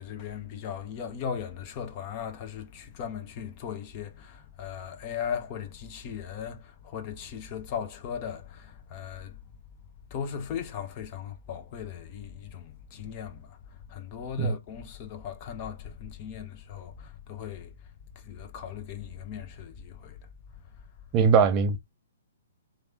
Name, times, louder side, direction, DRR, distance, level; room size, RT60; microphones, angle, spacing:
voice 1, 0.0-9.4 10.1-17.7 18.2-20.2, left 8 dB, 30° left, 0.7 m, -38 dB
voice 2, 21.1-21.8, right 6 dB, 25° right, 0.4 m, -21 dB
3.2 x 2.5 x 2.8 m
figure-of-eight pair, 120°, 0 cm